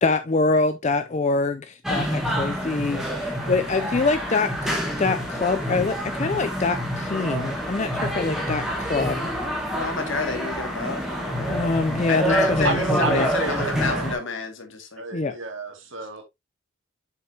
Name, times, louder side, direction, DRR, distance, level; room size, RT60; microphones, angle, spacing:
voice 1, 0.0-4.7 5.0-9.3 11.5-13.3 15.1-15.3, left 3 dB, 30° left, 0.4 m, -25 dB
sound 1, 1.8-14.1, equal, ahead, 2.0 m, -27 dB
voice 2, 9.7-11.6 12.1-15.0, left 4 dB, 60° left, 2.1 m, -30 dB
voice 3, 12.3-14.2 15.0-16.2, right 3 dB, 60° right, 2.3 m, -31 dB
7.2 x 6.9 x 2.8 m
head